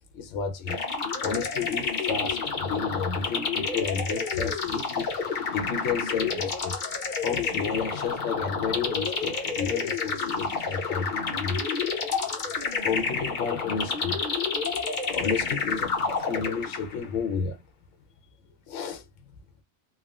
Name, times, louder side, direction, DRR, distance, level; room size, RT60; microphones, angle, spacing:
voice 1, 0.1-0.8 1.2-5.1 5.5-6.8 7.2-11.6 12.2-12.4 12.8-14.2 14.9-17.6 18.7-19.0, left 6 dB, 80° left, 0.9 m, -31 dB
sound 1, 0.7-17.1, left 4 dB, 45° left, 0.8 m, -29 dB
3.4 x 2.1 x 2.3 m
omnidirectional pair, 1.3 m